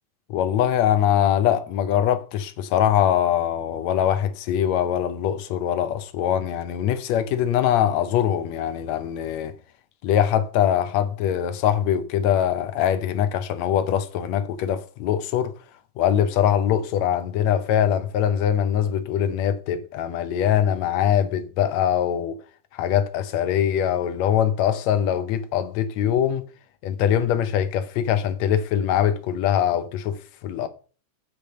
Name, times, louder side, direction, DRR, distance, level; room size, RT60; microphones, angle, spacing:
voice 1, 0.3-9.5 10.0-15.5 16.0-22.4 22.7-26.4 26.8-30.7, left 10 dB, 75° left, 1.8 m, -22 dB
8.6 x 4.8 x 6.6 m
omnidirectional pair, 3.6 m